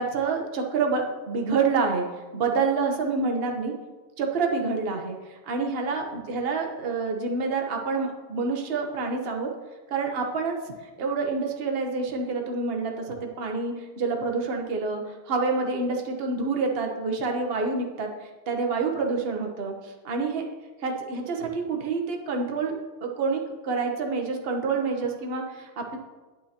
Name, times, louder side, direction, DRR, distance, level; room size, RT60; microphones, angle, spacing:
voice 1, 0.0-2.0 2.3-3.7 4.2-9.5 9.9-10.6 11.0-20.4 20.8-26.0, right 4 dB, 55° right, 2 dB, 0.6 m, -27 dB
9.0 x 8.7 x 2.9 m, 1.3 s
omnidirectional pair, 2.3 m